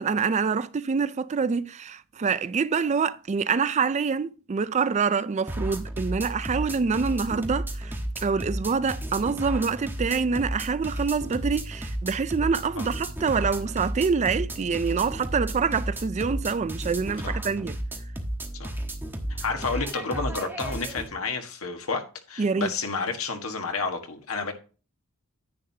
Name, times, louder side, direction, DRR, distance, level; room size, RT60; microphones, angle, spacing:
voice 1, 0.0-8.0 8.2-17.8 22.4-22.7, right 5 dB, 30° right, 0.4 m, -26 dB
sound 1, 5.5-21.1, right 1 dB, 10° right, 1.3 m, -33 dB
voice 2, 19.3-22.0 22.3-24.5, left 4 dB, 70° left, 1.5 m, -30 dB
10.0 x 9.2 x 2.8 m
head